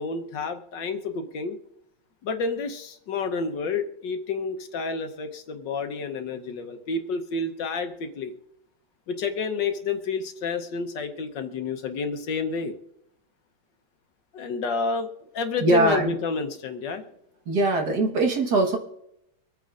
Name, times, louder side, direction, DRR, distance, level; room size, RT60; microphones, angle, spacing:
voice 1, 0.0-1.6 2.2-8.3 9.1-12.7 14.3-15.1 15.3-17.0, left 4 dB, 65° left, 6 dB, 1.5 m, -29 dB
voice 2, 15.6-16.1 17.5-18.8, right 2 dB, 55° right, 1 dB, 1.9 m, -21 dB
25.0 x 9.0 x 2.5 m, 0.77 s
omnidirectional pair, 2.2 m